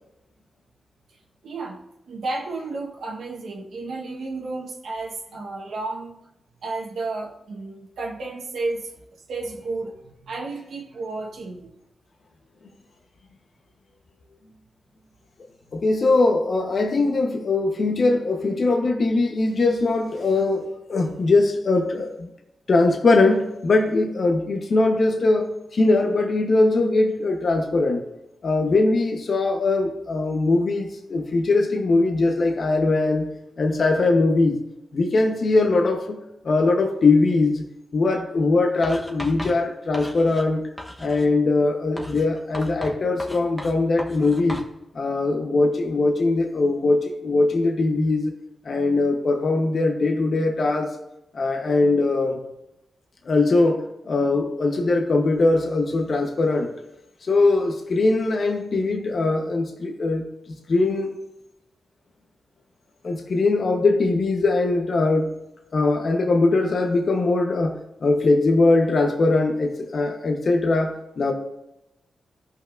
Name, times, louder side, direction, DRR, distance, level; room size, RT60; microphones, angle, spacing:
voice 1, 1.4-1.8 2.1-6.2 6.6-8.9 9.3-11.8 28.6-28.7, right 3 dB, 80° right, -1 dB, 1.3 m, -32 dB
voice 2, 15.7-22.3 22.7-28.0 28.4-33.3 33.6-34.6 34.9-37.6 37.9-40.7 41.0-44.6 44.9-48.3 48.6-50.9 51.3-52.4 53.2-56.7 57.2-60.3 60.7-61.2 63.0-65.3 65.7-71.3, left 3 dB, 55° left, 2 dB, 1.0 m, -21 dB
Writing, 38.8-40.5 40.8-41.3 42.0-44.7, equal, 5° left, 1.1 m, -36 dB
14.0 x 5.6 x 2.6 m, 0.87 s
cardioid pair, 75°, 0 cm